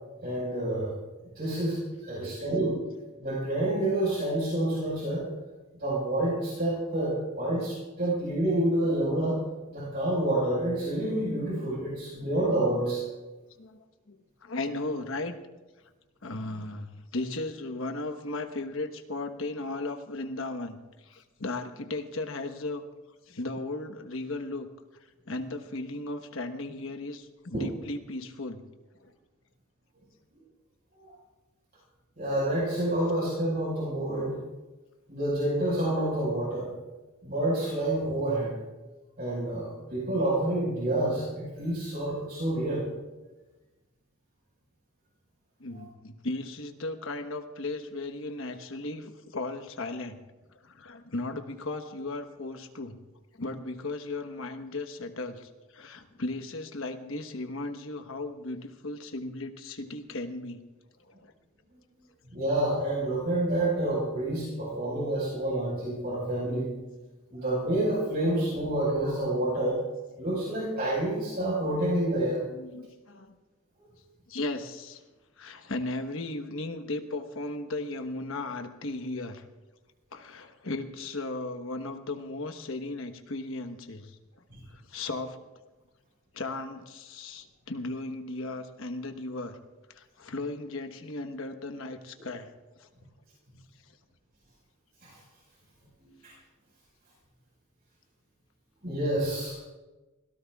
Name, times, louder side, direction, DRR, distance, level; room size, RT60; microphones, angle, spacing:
voice 1, 0.2-0.9 1.3-2.7 3.2-5.3 5.8-9.4 9.7-13.0 27.5-27.7 31.0-31.1 32.2-34.4 35.1-36.7 37.2-38.5 39.2-42.9 51.7-51.8 62.3-66.8 67.3-69.8 70.2-72.4 84.5-84.6 95.0-95.2 96.2-96.3 98.8-99.6, right 1 dB, 45° right, -5 dB, 5.0 m, -28 dB
voice 2, 13.6-15.4 16.2-22.8 23.3-24.7 25.3-28.6 29.0-29.1 45.6-50.2 50.5-53.0 53.4-60.6 61.1-61.3 72.5-73.3 74.3-75.0 75.4-79.4 80.1-84.2 84.7-85.4 86.3-89.6 89.9-92.5 92.8-92.9, left 2 dB, 70° left, 7 dB, 1.2 m, -36 dB
24.5 x 17.5 x 2.4 m, 1.2 s
head